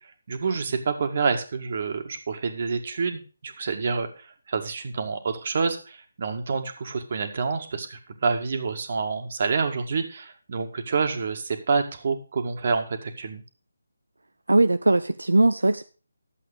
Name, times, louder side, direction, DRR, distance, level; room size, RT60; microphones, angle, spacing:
voice 1, 0.3-13.4, right 4 dB, 45° right, 6 dB, 1.9 m, -28 dB
voice 2, 14.5-15.9, right 2 dB, 85° right, 11 dB, 0.6 m, -20 dB
11.5 x 7.7 x 5.0 m, 0.36 s
figure-of-eight pair, 160°, 0 cm